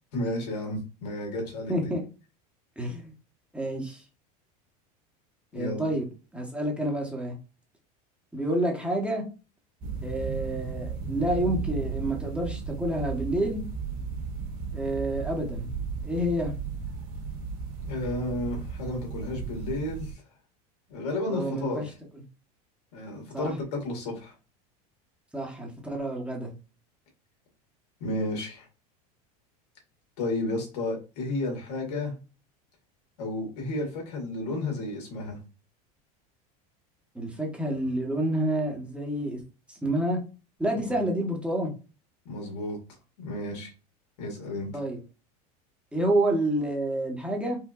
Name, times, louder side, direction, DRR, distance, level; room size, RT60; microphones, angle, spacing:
voice 1, 0.1-1.9 5.5-6.0 17.8-20.1 20.9-21.8 22.9-24.3 28.0-28.7 30.2-32.1 33.2-35.4 40.7-41.0 42.3-42.8 43.2-43.7 44.2-44.7, left 2 dB, 85° left, 0 dB, 1.9 m, -32 dB
voice 2, 1.7-2.0 2.8-3.1 3.5-4.0 5.5-6.1 6.3-7.4 8.3-9.2 10.0-13.6 14.7-15.7 16.0-16.5 21.3-21.8 23.3-23.5 25.3-26.5 37.1-39.4 39.7-40.2 40.6-41.7 44.7-45.0 45.9-47.6, right 1 dB, 5° right, 0 dB, 1.2 m, -28 dB
sound 1, 9.8-20.1, right 5 dB, 45° right, 1.5 m, -35 dB
4.6 x 2.5 x 2.4 m, 0.32 s
supercardioid pair, 120°, 20 cm